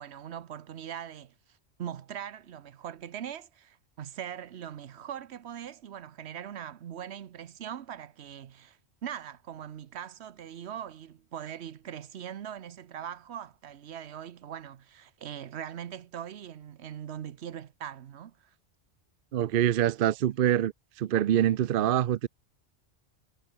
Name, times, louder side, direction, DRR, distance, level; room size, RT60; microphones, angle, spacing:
voice 1, 0.0-1.3 1.8-18.5, right 9 dB, 80° right, 1.1 m, -41 dB
voice 2, 19.3-20.7 21.0-22.3, right 11 dB, 60° right, 0.7 m, -25 dB
omnidirectional pair, 1.1 m